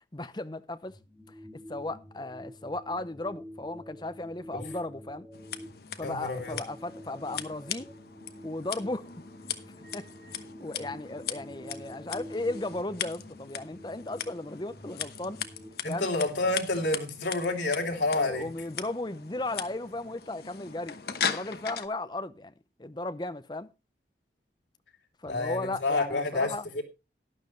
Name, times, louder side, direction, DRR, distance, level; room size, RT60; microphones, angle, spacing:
voice 1, 0.1-1.0 1.7-5.3 6.0-7.9 8.4-9.2 9.9-15.4 15.9-16.1 18.1-21.0 21.2-22.5 22.8-23.7 25.2-26.6, left 2 dB, 25° left, 0.7 m, -36 dB
sound 1, 0.9-15.7, left 1 dB, ahead, 2.4 m, -48 dB
Scissors, 5.3-21.9, left 8 dB, 60° left, 1.0 m, -39 dB
voice 2, 6.0-6.6 15.8-18.5 25.3-26.8, left 2 dB, 85° left, 3.2 m, -29 dB
12.0 x 11.5 x 3.1 m
head